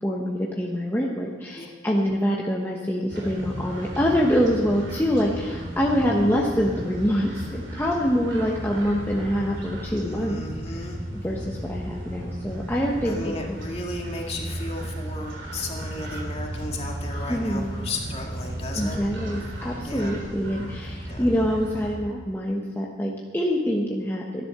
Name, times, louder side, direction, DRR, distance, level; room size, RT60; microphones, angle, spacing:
voice 1, 0.0-10.4 11.2-13.6 17.3-17.8 18.7-24.4, equal, 10° left, -2 dB, 1.1 m, -25 dB
sound 1, 3.1-22.0, right 1 dB, 85° right, 3.6 m, -35 dB
voice 2, 10.0-11.0 13.0-19.0 19.8-20.1 21.1-21.2, left 2 dB, 35° left, 0 dB, 2.2 m, -34 dB
14.0 x 11.0 x 6.7 m, 1.5 s
head